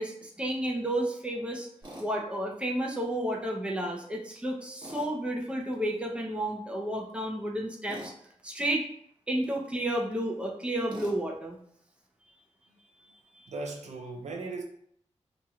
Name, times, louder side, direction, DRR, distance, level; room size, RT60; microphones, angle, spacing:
voice 1, 0.0-1.7 2.0-8.1 8.4-8.9 9.3-11.6 13.3-13.5, right 1 dB, 10° right, 0.7 m, -31 dB
Tools, 1.8-2.1 4.8-5.1 7.9-8.2 10.9-11.2, right 1 dB, 40° right, 1.2 m, -43 dB
voice 2, 13.5-14.6, right 3 dB, 70° right, 0.5 m, -37 dB
2.9 x 2.9 x 2.4 m
cardioid pair, 55°, 12 cm